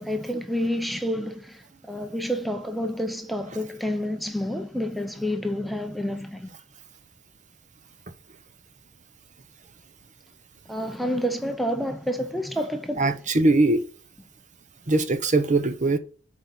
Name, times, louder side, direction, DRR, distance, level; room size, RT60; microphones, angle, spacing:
voice 1, 0.0-6.5 10.7-13.1, equal, ahead, 0.6 m, -29 dB
voice 2, 13.0-13.9 14.9-16.0, right 2 dB, 35° right, 0.8 m, -21 dB
8.3 x 4.7 x 5.5 m
head